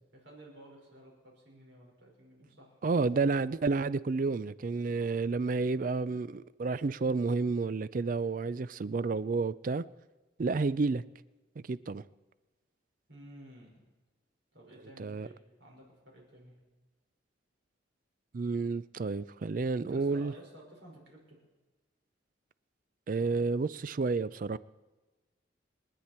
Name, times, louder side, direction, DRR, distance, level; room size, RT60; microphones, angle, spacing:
voice 1, 0.1-2.8 13.1-13.7 14.5-16.5 19.8-21.4, equal, 65° right, 5.2 m, -53 dB
voice 2, 2.8-9.8 10.4-11.0 11.6-12.0 15.0-15.3 18.3-20.3 23.1-24.6, right 4 dB, 45° right, 0.4 m, -30 dB
29.5 x 9.9 x 4.4 m
head